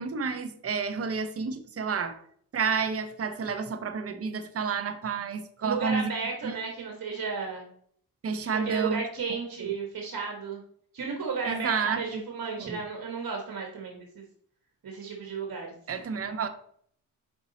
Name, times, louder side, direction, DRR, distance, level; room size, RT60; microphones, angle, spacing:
voice 1, 0.0-2.2 2.5-6.1 6.4-6.6 8.2-9.0 11.4-12.2 12.6-12.8 15.9-16.5, right 5 dB, 40° right, 0.7 m, -30 dB
voice 2, 5.6-7.7 8.6-10.6 10.9-14.2 14.8-15.7, right 5 dB, 60° right, 1.4 m, -33 dB
5.3 x 4.5 x 4.0 m
cardioid pair, 70°, 37 cm